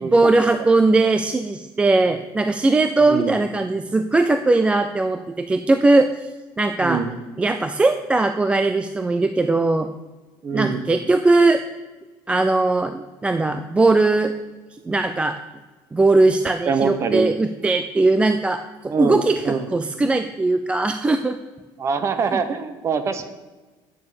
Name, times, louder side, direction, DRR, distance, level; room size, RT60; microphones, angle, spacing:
voice 1, 0.0-6.3 6.6-7.0 7.4-9.9 10.5-11.6 12.3-14.3 14.9-15.4 15.9-21.4 22.3-22.4, right 2 dB, 10° right, 8 dB, 0.3 m, -19 dB
voice 2, 3.1-3.4 6.8-7.1 10.4-10.8 16.7-17.3 18.9-19.7 21.8-23.3, right 5 dB, 30° right, 10 dB, 0.8 m, -24 dB
8.7 x 6.7 x 6.8 m, 1.3 s
cardioid pair, 155°, 10 cm